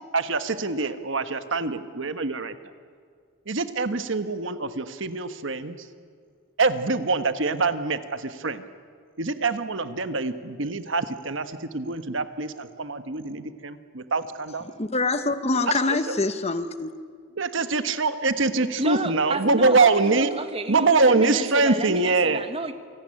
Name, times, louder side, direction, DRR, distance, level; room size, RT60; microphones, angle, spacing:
voice 1, 0.1-2.5 3.5-5.8 6.6-8.6 9.2-14.7 17.4-20.3 20.7-22.4, right 3 dB, 65° right, 10 dB, 1.3 m, -24 dB
voice 2, 14.6-16.9, left 3 dB, 30° left, 10 dB, 1.1 m, -25 dB
voice 3, 18.8-22.7, right 2 dB, 25° right, 9 dB, 1.4 m, -31 dB
28.0 x 18.5 x 10.0 m, 2.1 s
head